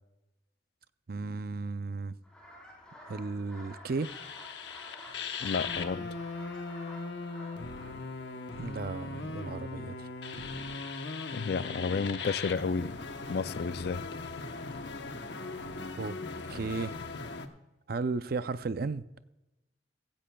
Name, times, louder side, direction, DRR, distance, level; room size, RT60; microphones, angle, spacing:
voice 1, 1.1-2.2 3.1-4.1 8.6-10.1 16.0-16.2 16.5-16.9 17.9-19.0, right 3 dB, 55° right, 0.5 m, -34 dB
sound 1, 2.2-7.9, equal, 5° left, 3.9 m, -51 dB
sound 2, 4.0-17.5, left 4 dB, 75° left, 1.0 m, -39 dB
voice 2, 5.4-6.2 11.3-13.0 13.3-14.0, left 5 dB, 60° left, 0.4 m, -31 dB
16.0 x 15.5 x 2.3 m
head